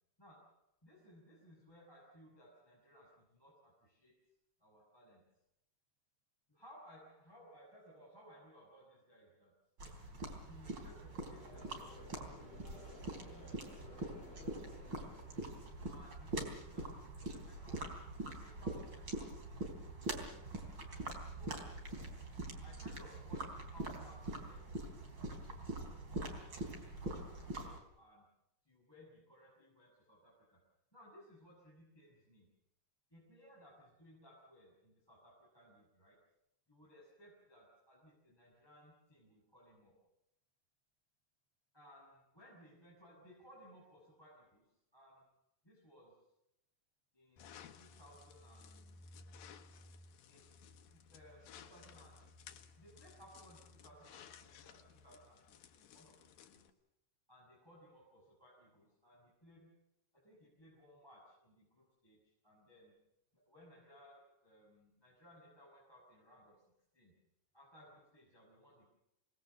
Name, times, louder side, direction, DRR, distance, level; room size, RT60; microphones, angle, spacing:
voice 1, 0.2-4.2 4.6-5.2 6.5-9.5 10.5-15.1 15.9-19.6 20.1-20.8 21.3-21.8 22.6-24.7 25.2-28.3 28.6-30.6 30.9-32.5 33.1-36.2 36.7-40.0 41.7-45.3 45.6-46.3 47.1-49.1 50.3-50.5 50.9-52.3 52.8-56.7 57.3-59.7 60.1-62.9 63.3-66.6 66.9-67.2 67.5-68.9, equal, 5° left, -5 dB, 6.4 m, -62 dB
sound 1, 9.8-27.8, right 2 dB, 30° right, 4.1 m, -44 dB
Conversation / Crowd, 10.9-16.2, left 3 dB, 45° left, 7.4 m, -57 dB
sound 2, 47.4-56.7, left 6 dB, 90° left, 3.1 m, -57 dB
27.5 x 19.5 x 7.1 m, 0.84 s
omnidirectional pair, 4.0 m